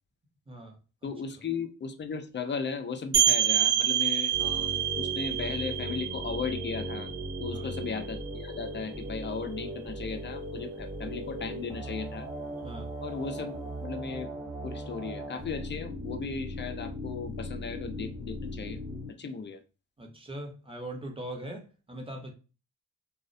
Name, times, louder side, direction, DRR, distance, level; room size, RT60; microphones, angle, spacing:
voice 1, 0.5-1.1 7.5-7.7 12.6-12.9 20.0-22.3, right 1 dB, 15° right, 0.8 m, -41 dB
voice 2, 1.0-7.1 7.4-12.3 13.0-14.3 14.6-19.6, left 5 dB, 30° left, 0.4 m, -36 dB
sound 1, 3.1-8.6, right 10 dB, 50° right, 0.5 m, -28 dB
sound 2, 4.3-19.1, equal, 30° right, 1.0 m, -38 dB
2.3 x 2.0 x 2.5 m
cardioid pair, 55°, 41 cm